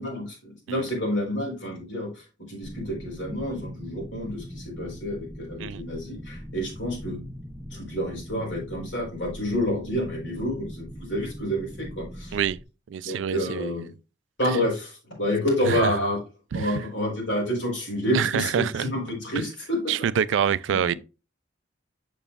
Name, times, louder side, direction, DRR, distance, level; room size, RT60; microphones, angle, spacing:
voice 1, 0.0-7.2 7.7-12.4 13.0-13.9 14.4-16.2 16.5-19.8 20.7-20.8, equal, 90° left, 4.1 m, -29 dB
sound 1, 2.6-12.6, equal, ahead, 0.7 m, -41 dB
voice 2, 12.9-13.7 14.4-14.6 15.7-15.9 16.5-16.8 18.1-18.9 19.4-19.5 19.9-20.9, right 8 dB, 85° right, 0.3 m, -26 dB
7.0 x 6.7 x 2.4 m
head